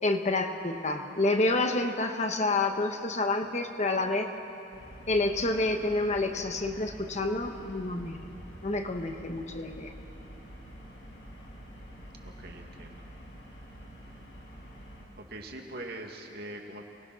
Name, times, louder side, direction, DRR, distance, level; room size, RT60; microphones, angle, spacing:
voice 1, 0.0-4.3 5.1-8.3 8.6-9.9, left 2 dB, 40° left, 5 dB, 1.3 m, -28 dB
sound 1, 4.7-15.0, equal, 90° left, 5.9 m, -47 dB
voice 2, 12.2-13.1 15.2-16.8, right 1 dB, 60° right, 2 dB, 2.2 m, -43 dB
27.5 x 19.5 x 6.3 m, 2.7 s
head